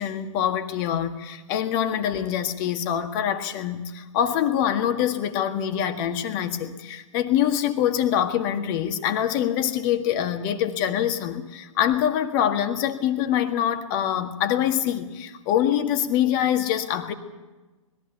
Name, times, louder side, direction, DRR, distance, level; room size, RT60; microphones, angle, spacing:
voice 1, 0.0-17.1, left 10 dB, 40° left, 7 dB, 1.7 m, -24 dB
20.5 x 14.0 x 9.0 m, 1.2 s
figure-of-eight pair, 115°, 17 cm